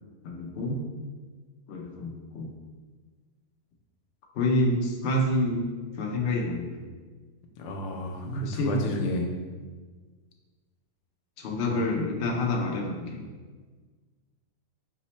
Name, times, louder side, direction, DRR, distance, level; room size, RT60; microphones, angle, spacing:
voice 1, 0.2-0.8 1.7-2.5 4.3-5.7 6.0-6.9 8.2-8.8 11.4-13.2, left 1 dB, 70° left, 0 dB, 0.6 m, -28 dB
voice 2, 7.6-9.3 11.7-11.8, left 2 dB, 90° left, 2 dB, 1.2 m, -32 dB
4.7 x 2.0 x 4.2 m, 1.4 s
omnidirectional pair, 1.7 m